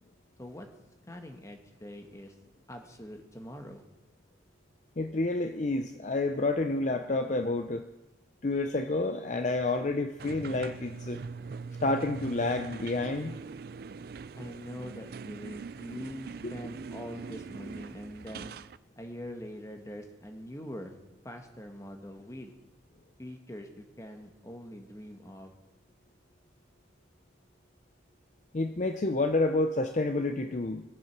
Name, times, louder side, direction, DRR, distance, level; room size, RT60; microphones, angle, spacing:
voice 1, 1.1-2.4 2.7-3.8 14.4-18.6 19.0-21.0 21.2-22.5 23.2-25.5, equal, 15° left, 4 dB, 1.3 m, -43 dB
voice 2, 5.0-7.8 8.4-11.2 11.8-13.3 28.5-30.8, left 2 dB, 40° left, 7 dB, 0.6 m, -29 dB
sound 1, 10.2-18.8, right 5 dB, 55° right, 0.4 m, -42 dB
19.0 x 7.6 x 6.0 m, 0.99 s
head